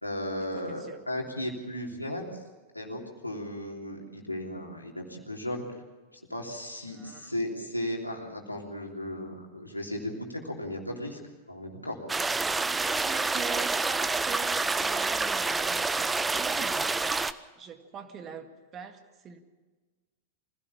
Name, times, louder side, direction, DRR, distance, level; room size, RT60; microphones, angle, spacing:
voice 1, 0.0-2.2 2.7-5.6 6.3-11.2 11.5-12.0, left 1 dB, 85° left, 0 dB, 3.3 m, -35 dB
voice 2, 0.5-1.0 6.9-7.3 12.6-17.0 17.6-19.4, right 7 dB, 30° right, 7 dB, 2.0 m, -43 dB
sound 1, 12.1-17.3, right 3 dB, 10° right, 0.7 m, -28 dB
24.5 x 17.0 x 7.3 m, 1.3 s
figure-of-eight pair, 90°, 0 cm